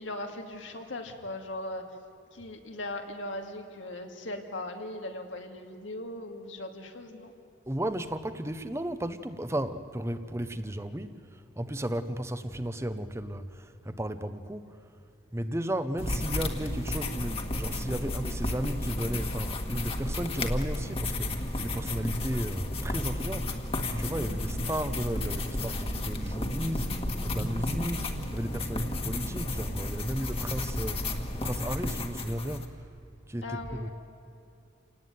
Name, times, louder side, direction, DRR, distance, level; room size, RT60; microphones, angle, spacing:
voice 1, 0.0-1.9 2.3-7.3 33.4-33.9, left 1 dB, 85° left, 3 dB, 2.5 m, -39 dB
voice 2, 7.7-14.8 15.3-23.6 23.9-32.9 33.3-33.9, right 1 dB, 15° right, 11 dB, 0.8 m, -34 dB
sound 1, 16.0-32.7, left 1 dB, 30° left, 1.7 m, -32 dB
sound 2, 23.8-30.3, equal, 65° right, 1.5 m, -44 dB
28.0 x 18.5 x 9.4 m, 2.5 s
head